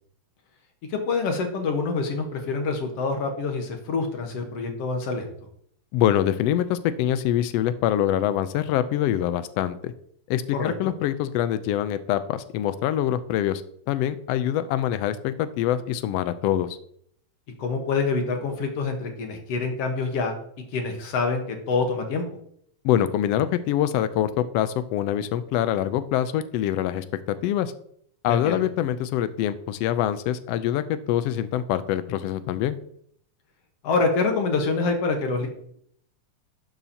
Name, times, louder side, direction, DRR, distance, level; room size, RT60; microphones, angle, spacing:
voice 1, 0.9-5.3 10.5-10.9 17.6-20.3 20.7-22.2 28.3-28.6 33.8-35.5, left 4 dB, 65° left, 4 dB, 2.0 m, -26 dB
voice 2, 5.9-9.9 10.3-13.6 13.9-16.8 22.8-27.0 27.4-27.7 28.2-32.8, left 11 dB, 85° left, 12 dB, 1.4 m, -24 dB
12.0 x 7.2 x 2.8 m, 0.67 s
omnidirectional pair, 3.3 m